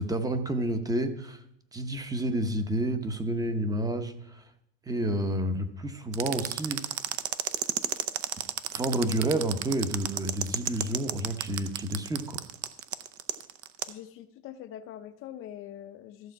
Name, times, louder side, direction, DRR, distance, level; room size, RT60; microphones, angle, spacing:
voice 1, 0.0-1.4 1.7-4.5 4.8-6.8 8.7-12.4, right 1 dB, 10° right, 8 dB, 0.8 m, -30 dB
sound 1, 6.1-13.9, right 13 dB, 50° right, 0.7 m, -31 dB
voice 2, 13.9-16.3, left 11 dB, 45° left, 10 dB, 0.6 m, -43 dB
13.5 x 6.9 x 4.6 m, 0.74 s
supercardioid pair, 140°, 30 cm